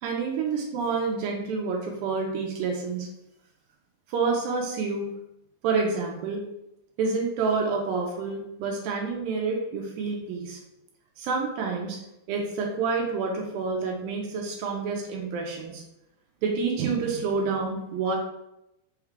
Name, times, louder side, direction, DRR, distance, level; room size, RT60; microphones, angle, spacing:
voice 1, 0.0-3.1 4.1-5.1 5.6-6.4 7.0-10.6 11.2-12.0 12.3-15.8 16.4-18.2, right 4 dB, 80° right, 1 dB, 2.3 m, -28 dB
6.3 x 2.3 x 3.6 m, 0.86 s
omnidirectional pair, 4.4 m